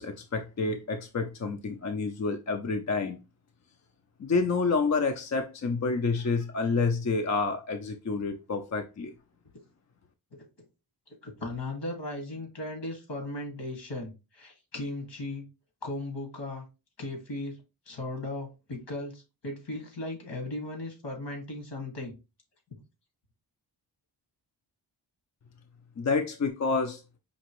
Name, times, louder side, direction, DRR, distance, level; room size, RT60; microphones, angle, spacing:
voice 1, 0.0-3.2 4.2-9.1 26.0-27.0, left 4 dB, 40° left, 0.5 m, -28 dB
voice 2, 11.2-15.5 15.8-16.6 17.0-17.6 17.9-22.1 22.7-22.8, left 2 dB, 75° left, 1.8 m, -37 dB
5.2 x 2.9 x 3.0 m
wide cardioid pair, 95°, 42 cm